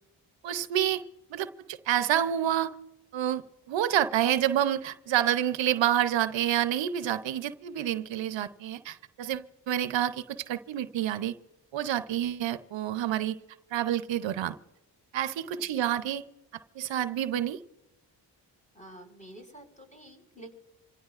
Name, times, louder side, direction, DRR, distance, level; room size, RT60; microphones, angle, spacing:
voice 1, 0.4-1.0 1.3-2.7 3.1-3.4 3.7-11.3 11.7-13.4 13.7-14.6 15.1-16.2 16.8-17.6, right 11 dB, 85° right, 12 dB, 0.7 m, -28 dB
voice 2, 15.5-15.9 18.7-20.5, right 1 dB, 15° left, 2 dB, 5.4 m, -49 dB
26.5 x 16.5 x 2.5 m, 1.0 s
cardioid pair, 60°, 44 cm